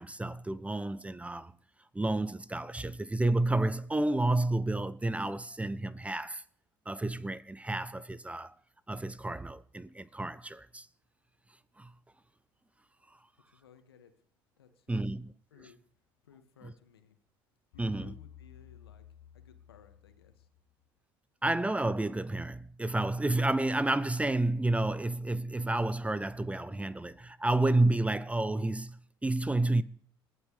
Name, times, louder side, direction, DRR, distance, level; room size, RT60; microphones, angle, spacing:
voice 1, 0.0-1.5 1.9-6.4 6.9-8.5 8.9-10.9 11.8-11.9 14.9-15.3 17.8-18.1 21.4-29.8, right 2 dB, 10° right, 0.7 m, -30 dB
voice 2, 13.5-14.1 14.6-15.0 15.5-15.8 16.2-17.2 17.7-19.0 19.3-20.5, left 8 dB, 85° left, 2.0 m, -58 dB
sound 1, 17.7-20.8, left 10 dB, 65° left, 1.0 m, -54 dB
28.5 x 12.0 x 3.4 m
hypercardioid pair, 65°, 12 cm